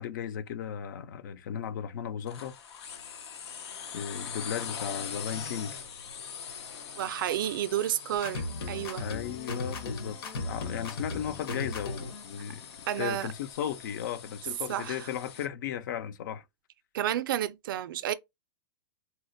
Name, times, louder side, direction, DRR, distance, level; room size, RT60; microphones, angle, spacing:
voice 1, 0.0-2.6 3.9-5.8 9.0-16.4, left 9 dB, 50° left, 0.4 m, -36 dB
sound 1, 2.3-15.5, left 7 dB, 90° left, 0.8 m, -43 dB
voice 2, 7.0-9.1 12.9-13.3 14.7-15.1 16.9-18.1, right 11 dB, 55° right, 0.4 m, -31 dB
sound 2, 8.2-12.2, left 3 dB, 65° left, 1.0 m, -36 dB
4.0 x 2.1 x 2.5 m
supercardioid pair, 170°, 13 cm